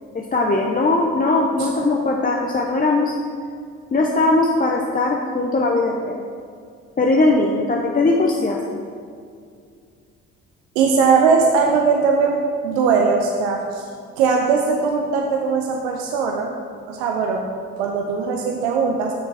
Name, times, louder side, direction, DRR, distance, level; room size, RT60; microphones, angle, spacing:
voice 1, 0.1-3.1 3.9-6.2 7.0-8.8, left 2 dB, 25° left, 0 dB, 1.0 m, -19 dB
voice 2, 10.8-12.4 12.6-13.8 14.2-16.6 16.9-17.4 17.8-19.1, right 5 dB, 90° right, 2 dB, 0.7 m, -19 dB
8.8 x 6.7 x 4.3 m, 2.2 s
hypercardioid pair, 55°, 31 cm